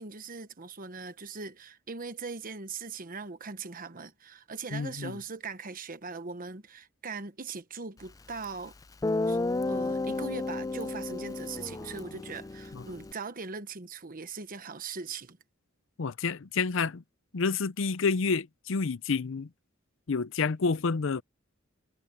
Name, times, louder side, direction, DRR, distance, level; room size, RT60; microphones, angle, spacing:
voice 1, 0.0-8.7 9.3-9.4 9.7-15.4, right 4 dB, 45° right, 1.2 m, -40 dB
voice 2, 4.7-5.2 12.7-12.8 16.0-17.0 17.3-19.5 20.1-21.2, left 4 dB, 65° left, 0.6 m, -29 dB
Guitar, 8.4-8.5 9.0-13.1, left 2 dB, 15° left, 0.4 m, -32 dB
head